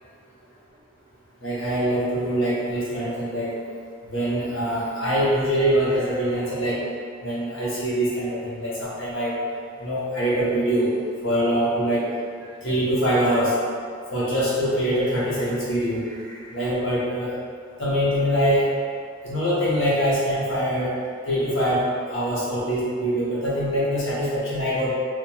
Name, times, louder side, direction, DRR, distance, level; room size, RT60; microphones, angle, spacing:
voice 1, 1.4-3.5 4.1-6.8 7.2-9.4 9.8-10.9 11.2-12.1 12.6-13.5 14.1-17.3 17.8-18.7 19.2-20.9 21.3-24.9, equal, 70° left, -8 dB, 0.8 m, -24 dB
2.9 x 2.2 x 2.2 m, 2.1 s
head